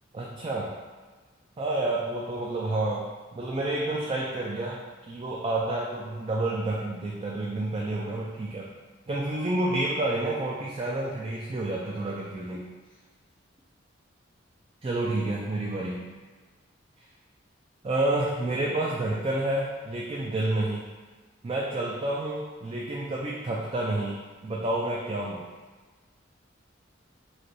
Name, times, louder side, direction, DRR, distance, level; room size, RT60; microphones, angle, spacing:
voice 1, 0.1-0.7 1.6-4.8 5.1-8.7 9.1-12.6 14.8-16.0 17.8-20.9 21.4-25.4, right 2 dB, 30° right, -3 dB, 0.3 m, -29 dB
3.3 x 2.5 x 3.9 m, 1.4 s
head